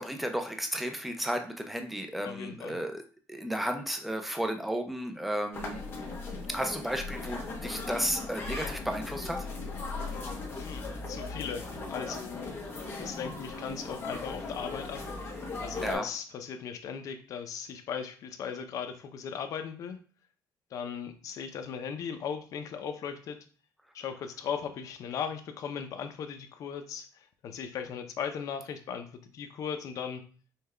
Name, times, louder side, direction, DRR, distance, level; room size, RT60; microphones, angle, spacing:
voice 1, 0.0-3.0 3.3-5.8 6.5-9.5 15.8-16.1, equal, ahead, 5 dB, 0.5 m, -33 dB
voice 2, 2.2-2.8 10.6-12.6 13.0-15.0 15.6-20.0 20.7-23.4 23.9-30.2, left 7 dB, 55° left, 8 dB, 0.6 m, -38 dB
sound 1, 5.5-15.9, left 3 dB, 35° left, 0.9 m, -38 dB
5.5 x 2.3 x 3.2 m, 0.42 s
cardioid pair, 150°, 7 cm